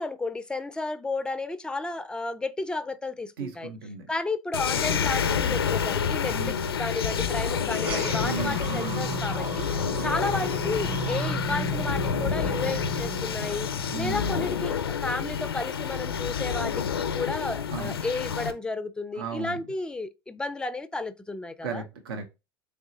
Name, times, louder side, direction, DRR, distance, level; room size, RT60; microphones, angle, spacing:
voice 1, 0.0-3.7 4.1-9.7 10.0-13.7 14.0-21.8, left 3 dB, 5° left, 0.4 m, -32 dB
voice 2, 3.4-4.1 6.3-6.7 8.2-9.1 9.8-10.1 13.9-14.4 17.7-18.0 19.2-19.6 21.6-22.2, right 4 dB, 75° right, 0.7 m, -35 dB
sound 1, 4.5-18.5, left 7 dB, 85° left, 0.4 m, -29 dB
sound 2, 7.7-14.4, right 3 dB, 35° right, 1.8 m, -34 dB
3.6 x 3.3 x 2.7 m
hypercardioid pair, 75°, 12 cm